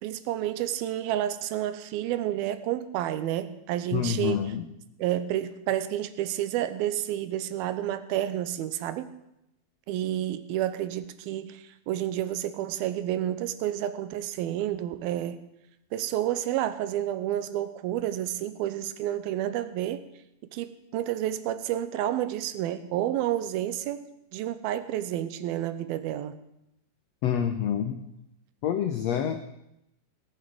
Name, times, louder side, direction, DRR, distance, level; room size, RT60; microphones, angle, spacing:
voice 1, 0.0-4.5 5.0-9.2 9.9-15.4 15.9-20.0 20.5-26.4, right 12 dB, 90° right, 13 dB, 2.8 m, -30 dB
voice 2, 3.9-4.6 27.2-28.0 28.6-29.4, left 9 dB, 85° left, 8 dB, 1.4 m, -27 dB
17.5 x 9.1 x 7.8 m, 0.84 s
omnidirectional pair, 4.2 m